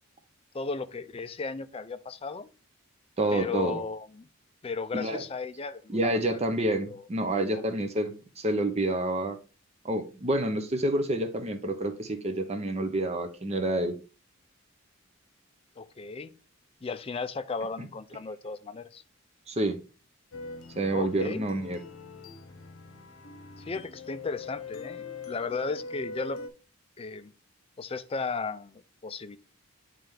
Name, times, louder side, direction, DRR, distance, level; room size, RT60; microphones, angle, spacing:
voice 1, 0.5-2.5 3.3-4.3 4.6-6.3 6.9-7.0 7.3-7.7 15.8-16.3 16.8-19.0 20.9-21.4 23.6-26.4 27.0-27.3 27.8-29.4, left 4 dB, 25° left, 0.3 m, -35 dB
voice 2, 3.2-3.8 4.9-5.2 5.9-9.4 9.8-14.0 17.8-17.9 19.5-19.8 20.8-21.8, right 1 dB, 30° right, 0.6 m, -28 dB
sound 1, 20.3-26.5, left 3 dB, 70° left, 1.0 m, -42 dB
8.9 x 3.3 x 3.5 m
head